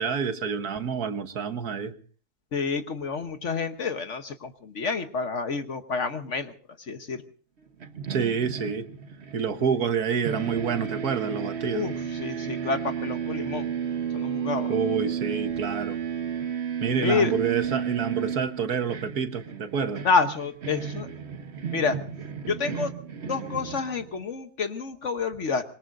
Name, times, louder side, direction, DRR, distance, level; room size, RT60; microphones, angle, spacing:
voice 1, 0.0-1.9 8.1-8.9 9.3-11.9 14.7-16.0 16.8-20.0, right 6 dB, 70° right, 9 dB, 1.7 m, -28 dB
voice 2, 2.5-6.5 6.9-7.2 11.7-13.7 14.1-14.7 17.0-17.3 20.0-21.1 21.7-22.0 22.5-22.9 23.2-25.6, left 5 dB, 50° left, 9 dB, 1.3 m, -28 dB
sound 1, 7.8-10.0 10.2-24.2, right 8 dB, 45° right, 1.3 m, -33 dB
25.5 x 21.5 x 2.6 m, 0.42 s
omnidirectional pair, 1.7 m